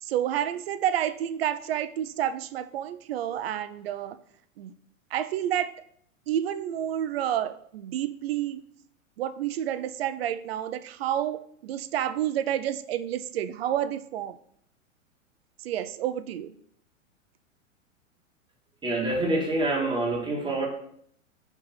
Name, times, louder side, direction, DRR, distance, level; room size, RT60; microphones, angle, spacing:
voice 1, 0.0-4.2 4.6-4.7 5.1-5.7 6.3-8.6 9.2-14.4 15.6-16.5, right 11 dB, 50° right, 13 dB, 0.5 m, -29 dB
voice 2, 18.8-20.7, right 2 dB, 10° right, 0 dB, 1.3 m, -26 dB
5.3 x 3.5 x 5.7 m, 0.66 s
figure-of-eight pair, 100°, 39 cm